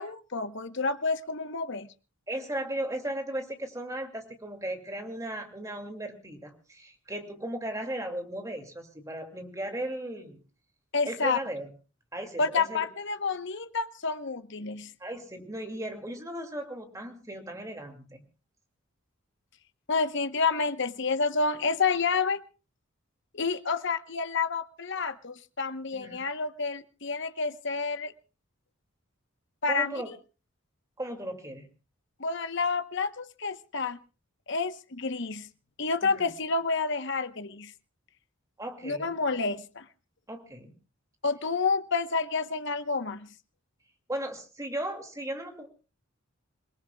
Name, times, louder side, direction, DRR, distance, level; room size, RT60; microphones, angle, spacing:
voice 1, 0.0-1.9 10.9-11.4 12.4-14.9 19.9-22.4 23.3-28.1 29.6-30.0 32.2-34.0 34.5-35.5 35.8-37.7 38.8-39.9 41.2-43.3, left 4 dB, 55° left, 10 dB, 1.0 m, -29 dB
voice 2, 2.3-10.4 11.1-11.7 12.1-12.9 15.0-18.2 25.9-26.3 29.7-30.1 31.0-31.7 36.0-36.2 38.6-39.1 40.3-40.7 44.1-45.7, right 1 dB, 15° right, 4 dB, 2.4 m, -36 dB
27.5 x 18.5 x 2.3 m, 0.34 s
head